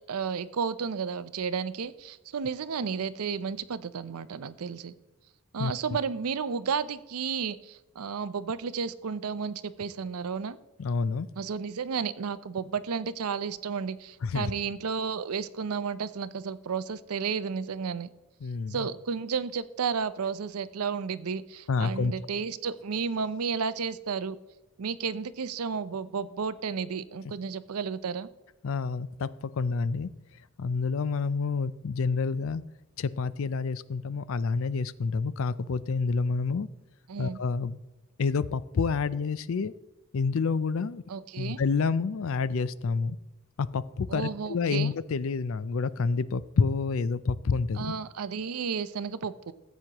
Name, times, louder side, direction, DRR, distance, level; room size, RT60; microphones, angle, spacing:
voice 1, 0.1-4.9 5.5-10.6 11.4-18.1 18.7-24.4 24.8-28.3 37.1-37.4 41.1-41.6 44.1-45.0 47.7-49.5, right 6 dB, 80° right, 15 dB, 0.5 m, -32 dB
voice 2, 10.8-11.3 14.2-14.5 18.4-18.9 21.7-22.1 28.6-29.3 29.6-30.1 30.6-32.6 33.0-36.7 37.2-37.8 38.2-39.7 40.1-41.0 41.4-43.2 43.6-47.9, left 4 dB, 65° left, 17 dB, 0.4 m, -28 dB
15.0 x 8.1 x 2.9 m, 1.1 s
head